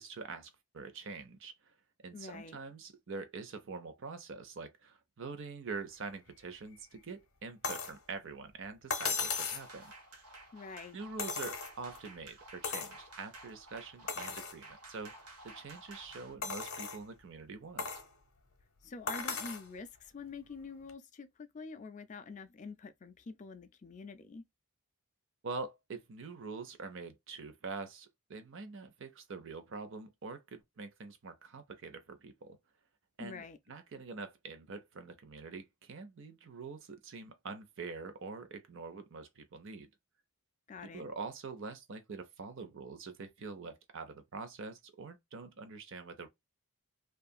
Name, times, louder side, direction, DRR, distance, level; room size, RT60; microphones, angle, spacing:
voice 1, 0.0-1.7 2.0-9.9 10.9-17.9 25.4-32.6 33.2-39.9 40.8-46.3, right 4 dB, 55° right, 0.6 m, -45 dB
voice 2, 2.1-2.6 10.5-11.0 18.8-24.4 33.2-33.6 40.7-41.0, left 4 dB, 35° left, 0.3 m, -46 dB
sound 1, 7.6-8.0 8.9-9.7 11.2-12.0 12.6-13.0 13.5-13.6 14.1-14.6 15.2-15.3 16.4-17.0 17.8-18.1 19.1-19.7 20.9-21.0, left 5 dB, 70° left, 0.8 m, -36 dB
sound 2, 9.5-16.3, right 2 dB, 85° right, 1.0 m, -53 dB
2.7 x 2.4 x 2.3 m
head